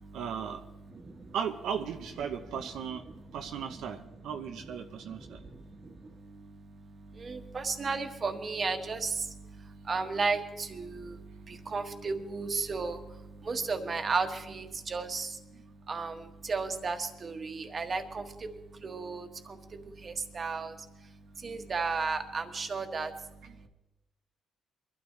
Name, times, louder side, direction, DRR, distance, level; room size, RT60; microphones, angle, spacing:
voice 1, 0.1-0.6 1.3-3.0 3.3-5.4, right 7 dB, 80° right, 5 dB, 0.9 m, -36 dB
voice 2, 7.2-9.1 9.9-11.1 11.7-13.0 13.5-15.3 15.9-16.1 16.5-18.2 18.8-19.3 20.0-20.7 21.4-23.1, right 4 dB, 40° right, 6 dB, 1.5 m, -33 dB
23.0 x 12.5 x 3.3 m, 0.99 s
cardioid pair, 90°, 0 cm